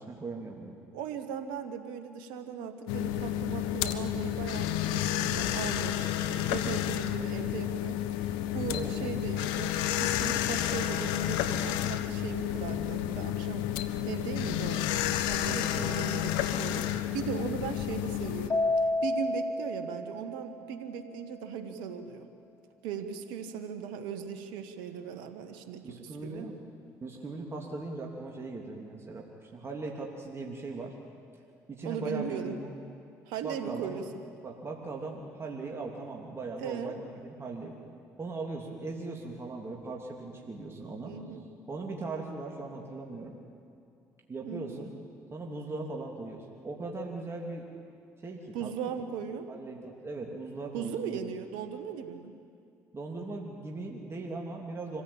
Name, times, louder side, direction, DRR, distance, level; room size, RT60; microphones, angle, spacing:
voice 1, 0.0-0.7 8.7-9.2 15.4-15.7 25.8-26.5 27.0-30.9 31.7-32.7 33.4-34.0 34.4-37.7 38.2-41.1 41.7-43.4 44.3-44.9 45.3-47.6 48.2-48.9 49.5-51.2 52.9-55.0, right 3 dB, 30° right, -1 dB, 3.0 m, -39 dB
voice 2, 0.9-13.7 14.0-18.6 19.0-22.3 22.8-26.5 31.8-32.6 33.3-34.0 36.6-36.9 41.0-41.4 44.4-44.8 48.5-49.5 50.7-52.4, right 7 dB, 80° right, 8 dB, 1.4 m, -38 dB
sound 1, 2.9-18.5, left 12 dB, 80° left, 1.0 m, -31 dB
Keyboard (musical), 18.5-21.0, left 2 dB, 45° left, 3.3 m, -30 dB
25.0 x 16.0 x 8.9 m, 2.5 s
hypercardioid pair, 60°, 8 cm